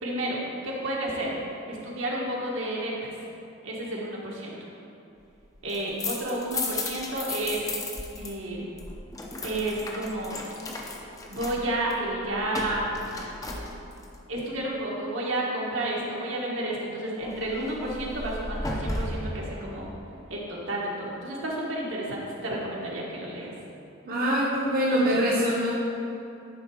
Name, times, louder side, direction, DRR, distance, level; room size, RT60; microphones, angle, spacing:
voice 1, 0.0-1.4 1.7-3.1 3.6-4.5 5.6-7.7 8.2-8.7 9.4-10.5 11.3-13.1 14.3-19.9 20.3-23.5, right 1 dB, 70° right, -4 dB, 1.5 m, -31 dB
sound 1, 5.5-8.3 8.6-14.2 17.2-19.4, left 2 dB, 15° left, 0.6 m, -35 dB
voice 2, 24.1-25.7, equal, 45° right, -6 dB, 1.0 m, -24 dB
10.5 x 4.0 x 4.7 m, 2.7 s
head